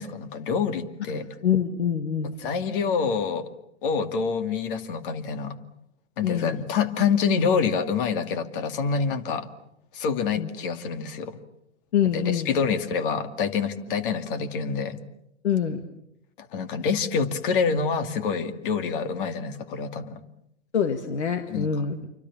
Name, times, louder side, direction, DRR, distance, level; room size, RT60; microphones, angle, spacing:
voice 1, 0.0-1.3 2.4-3.4 3.8-5.6 6.2-9.5 9.9-11.4 12.1-15.0 16.4-20.2 21.5-21.7, left 5 dB, 50° left, 10 dB, 2.4 m, -26 dB
voice 2, 1.1-2.3 6.2-6.6 10.4-10.5 11.9-12.5 15.4-15.8 20.7-22.1, left 8 dB, 75° left, 8 dB, 2.1 m, -25 dB
28.0 x 24.5 x 7.2 m, 0.80 s
hypercardioid pair, 125°, 35 cm